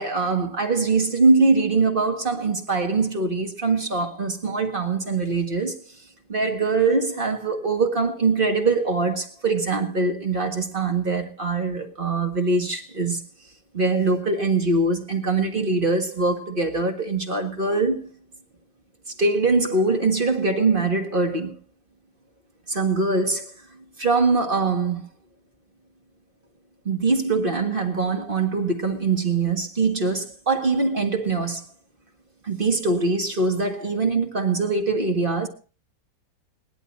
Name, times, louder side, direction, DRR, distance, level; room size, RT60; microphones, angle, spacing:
voice 1, 0.0-5.8 6.3-13.2 13.7-18.1 19.2-21.6 22.7-25.0 26.8-31.6 32.4-35.5, right 3 dB, 30° right, 1.8 m, -23 dB
19.5 x 11.0 x 4.0 m
omnidirectional pair, 1.9 m